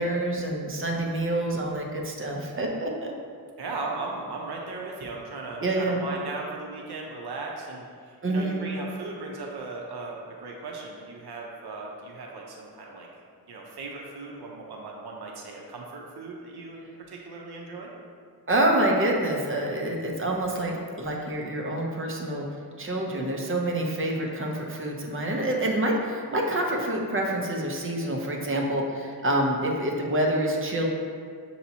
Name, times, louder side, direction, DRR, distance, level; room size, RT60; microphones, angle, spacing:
voice 1, 0.0-3.1 5.6-6.0 8.2-8.6 18.5-22.5 22.8-30.9, right 1 dB, 30° right, 0 dB, 0.6 m, -27 dB
voice 2, 3.6-13.1 13.5-16.8 17.1-17.9, right 3 dB, 70° right, -1 dB, 0.7 m, -37 dB
6.8 x 2.8 x 2.7 m, 2.1 s
wide cardioid pair, 120°, 40 cm